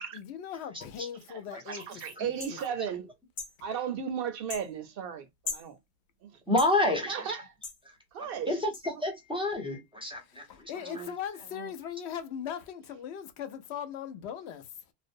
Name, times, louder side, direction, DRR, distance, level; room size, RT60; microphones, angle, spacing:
voice 1, 0.1-2.0 2.5-2.6 10.3-14.7, left 8 dB, 85° left, 0.8 m, -39 dB
voice 2, 0.7-1.1 1.5-1.8 2.2-2.3 6.5-7.3 7.8-8.0 8.4-10.7, left 1 dB, 5° right, 0.5 m, -30 dB
voice 3, 1.7-3.1 3.6-5.8 6.2-6.4 7.1-7.5 8.1-8.5 10.8-11.1 11.5-11.7, right 7 dB, 65° right, 0.7 m, -35 dB
sound 1, 2.4-2.6 3.4-3.5 4.5-4.7 5.4-5.7 6.6-6.7 7.6-7.8 8.7-8.8, left 4 dB, 50° left, 0.9 m, -37 dB
2.5 x 2.0 x 2.4 m
omnidirectional pair, 1.1 m